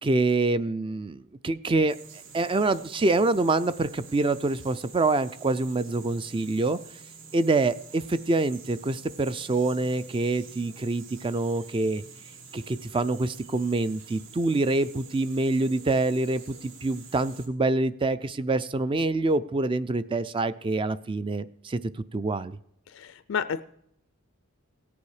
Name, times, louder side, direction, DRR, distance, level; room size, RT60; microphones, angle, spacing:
voice 1, 0.0-2.0 2.3-6.8 7.3-12.0 12.5-21.8 22.1-22.6, right 2 dB, 25° right, 15 dB, 0.4 m, -26 dB
sound 1, 1.9-17.5, right 5 dB, 60° right, 1.6 m, -48 dB
voice 2, 22.9-23.6, left 7 dB, 60° left, 14 dB, 0.4 m, -30 dB
17.5 x 7.0 x 4.8 m, 0.72 s
head